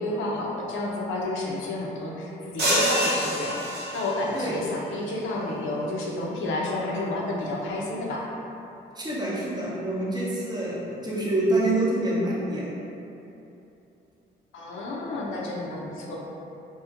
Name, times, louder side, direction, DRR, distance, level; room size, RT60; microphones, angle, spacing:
voice 1, 0.0-3.6 3.9-8.3 14.5-16.2, left 2 dB, 80° left, -3 dB, 0.6 m, -30 dB
sound 1, 2.6-4.4, equal, 55° right, 0.8 m, -26 dB
voice 2, 9.0-12.7, right 1 dB, 20° right, -6 dB, 0.7 m, -26 dB
2.9 x 2.6 x 2.4 m, 2.9 s
cardioid pair, 90°, 20 cm